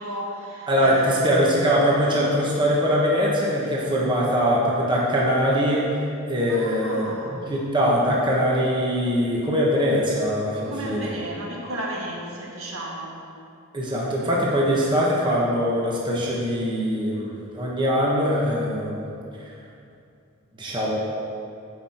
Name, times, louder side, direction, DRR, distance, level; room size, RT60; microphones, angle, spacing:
voice 1, 0.0-1.6 2.1-2.3 3.6-3.8 6.5-7.4 10.7-13.3, right 1 dB, 65° right, -2 dB, 1.8 m, -33 dB
voice 2, 0.7-5.9 6.3-7.1 7.5-11.1 13.7-19.0 20.6-21.0, equal, 20° right, -4 dB, 1.3 m, -22 dB
15.5 x 5.7 x 4.4 m, 2.6 s
head